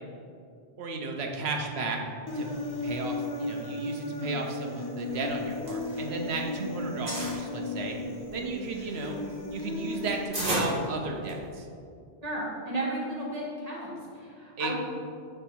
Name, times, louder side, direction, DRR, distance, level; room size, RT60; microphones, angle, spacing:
voice 1, 0.8-2.0 2.3-2.5 2.8-8.0 8.3-9.2 9.5-11.7 14.6-14.7, right 3 dB, 80° right, 2 dB, 1.0 m, -34 dB
Human voice, 2.3-10.3, left 2 dB, 25° left, 0.6 m, -35 dB
sound 1, 5.3-6.5 6.8-7.4 8.0-11.6, right 1 dB, 55° right, 1.8 m, -34 dB
voice 2, 12.2-14.7, right 1 dB, 40° right, -5 dB, 1.4 m, -34 dB
5.6 x 4.0 x 4.5 m, 2.4 s
omnidirectional pair, 1.1 m